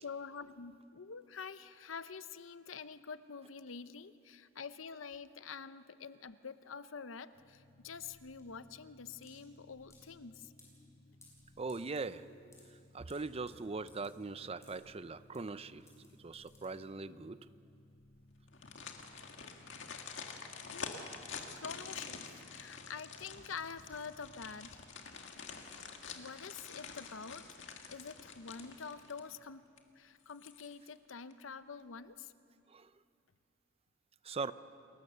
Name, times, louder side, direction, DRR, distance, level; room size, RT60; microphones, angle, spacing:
voice 1, 0.0-10.5 20.7-21.0 21.5-24.8 26.1-27.5 27.9-29.7 29.9-32.3, left 5 dB, 90° left, 13 dB, 0.8 m, -47 dB
sound 1, 7.3-24.8, left 1 dB, 50° left, 2.3 m, -62 dB
sound 2, 7.3-17.2, left 3 dB, 15° left, 6.3 m, -65 dB
voice 2, 11.6-12.3 12.9-17.4 32.7-32.9 34.2-34.5, right 4 dB, 30° right, 14 dB, 0.6 m, -41 dB
sound 3, 18.5-29.4 29.8-29.9 30.3-31.0 31.3-31.4, left 5 dB, 65° left, 2.0 m, -47 dB
28.5 x 21.5 x 6.8 m, 2.5 s
head